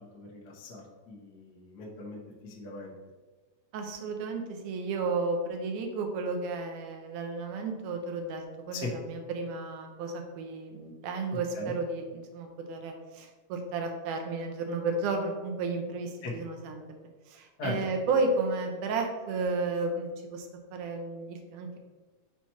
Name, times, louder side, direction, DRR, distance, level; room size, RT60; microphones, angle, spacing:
voice 1, 0.1-2.9 8.7-8.9 11.5-11.7 16.2-16.3 17.6-17.8, left 2 dB, 75° left, -3 dB, 0.9 m, -39 dB
voice 2, 3.7-16.8 17.3-21.8, right 3 dB, 75° right, 3 dB, 2.2 m, -33 dB
5.9 x 3.0 x 5.6 m, 1.3 s
omnidirectional pair, 3.7 m